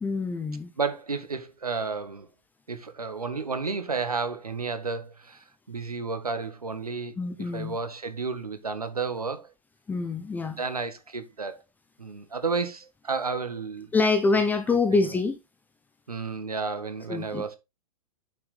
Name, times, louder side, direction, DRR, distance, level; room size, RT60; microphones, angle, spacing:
voice 1, 0.0-0.7 7.2-7.8 9.9-10.6 13.9-15.4 17.1-17.4, left 3 dB, 10° left, 0.7 m, -25 dB
voice 2, 0.8-2.3 2.7-9.5 10.5-11.6 12.0-13.9 14.9-15.1 16.1-17.6, right 4 dB, 80° right, 1.6 m, -32 dB
8.5 x 6.1 x 3.4 m
figure-of-eight pair, 115°, 19 cm